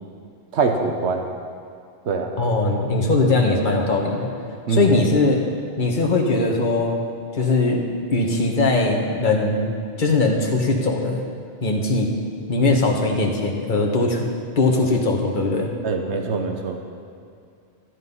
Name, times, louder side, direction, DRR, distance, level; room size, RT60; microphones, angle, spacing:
voice 1, 0.5-1.2 2.1-2.3 4.7-5.0 12.7-12.8 15.8-16.8, right 4 dB, 80° right, 4 dB, 1.3 m, -23 dB
voice 2, 2.4-4.3 4.7-5.4 5.8-7.0 7.3-9.6 10.0-11.2 11.6-12.1 12.5-14.2 14.6-15.7, left 2 dB, 45° left, 0 dB, 1.6 m, -20 dB
12.0 x 12.0 x 5.6 m, 2.3 s
omnidirectional pair, 1.1 m